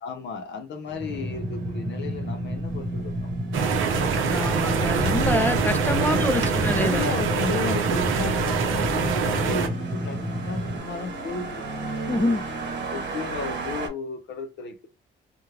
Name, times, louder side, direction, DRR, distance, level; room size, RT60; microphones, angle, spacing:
voice 1, 0.0-3.1 6.0-11.8 12.1-12.4 12.9-14.9, left 4 dB, 65° left, 0.6 m, -34 dB
sound 1, 0.9-13.9, right 3 dB, 60° right, 0.9 m, -37 dB
sound 2, 1.0-10.8, equal, 35° right, 1.2 m, -31 dB
sound 3, 3.5-9.7, right 5 dB, 85° right, 0.5 m, -24 dB
voice 2, 4.3-7.0 12.1-12.4, left 1 dB, 10° left, 0.3 m, -26 dB
2.2 x 2.1 x 3.2 m
cardioid pair, 90°, 20 cm